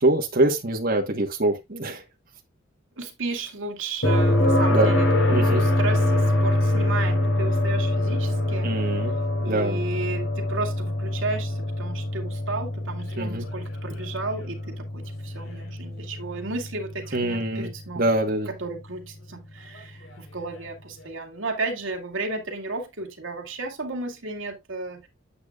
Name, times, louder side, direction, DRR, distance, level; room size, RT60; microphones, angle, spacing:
voice 1, 0.0-2.0 4.7-5.0 5.3-5.6 8.6-9.1 9.5-9.8 13.2-13.4 17.1-17.7 18.0-18.5, right 1 dB, 50° right, 1.3 m, -24 dB
voice 2, 3.0-8.8 9.4-18.1 18.5-25.1, right 3 dB, 85° right, 2.2 m, -33 dB
sound 1, 4.0-17.9 20.1-20.2, left 1 dB, 75° left, 4.0 m, -24 dB
8.5 x 8.1 x 2.4 m
head